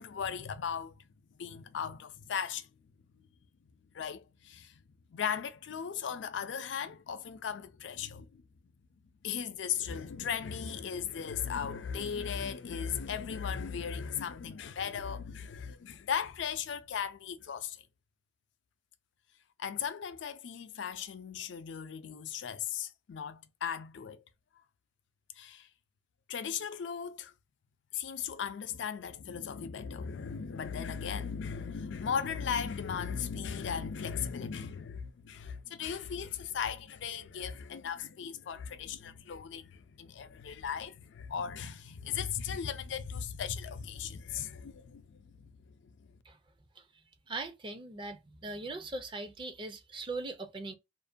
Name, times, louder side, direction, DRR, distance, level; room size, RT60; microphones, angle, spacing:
voice 1, 0.0-2.7 3.1-3.3 3.9-4.8 5.1-8.4 9.2-17.9 19.6-24.2 25.4-25.7 26.3-27.3 27.9-46.2, left 7 dB, 85° left, 0.4 m, -37 dB
voice 2, 47.3-50.7, right 3 dB, 25° right, 0.4 m, -40 dB
2.5 x 2.1 x 2.5 m
head